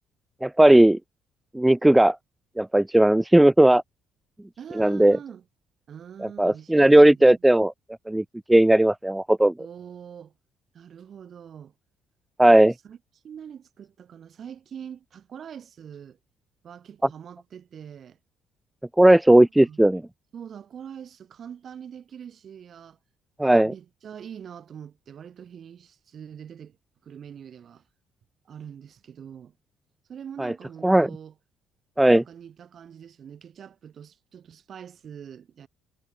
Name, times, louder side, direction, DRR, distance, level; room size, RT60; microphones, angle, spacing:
voice 1, 0.4-1.0 1.5-2.2 2.6-3.8 4.8-5.2 6.4-7.7 8.1-8.2 8.5-9.5 12.4-12.7 19.0-20.0 23.4-23.7 30.4-30.5 30.8-31.1 32.0-32.2, right 1 dB, 5° right, 0.5 m, -16 dB
voice 2, 4.6-5.4 5.9-7.3 9.6-10.3 10.7-11.7 12.8-13.0 13.2-16.2 16.6-18.2 19.3-19.8 20.3-23.0 23.6-26.8 27.0-27.8 28.5-29.5 30.1-31.3 32.1-35.7, right 8 dB, 45° right, 3.8 m, -43 dB
cardioid pair, 120°, 0 cm